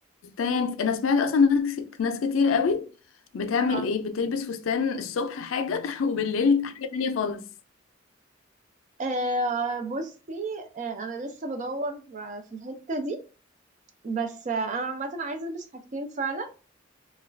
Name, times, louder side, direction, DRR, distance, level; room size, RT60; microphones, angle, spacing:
voice 1, 0.2-2.9 3.3-7.4, left 5 dB, 85° left, 0.4 m, -25 dB
voice 2, 9.0-13.2 14.0-16.5, right 2 dB, 40° right, 0.4 m, -31 dB
2.3 x 2.2 x 3.2 m
head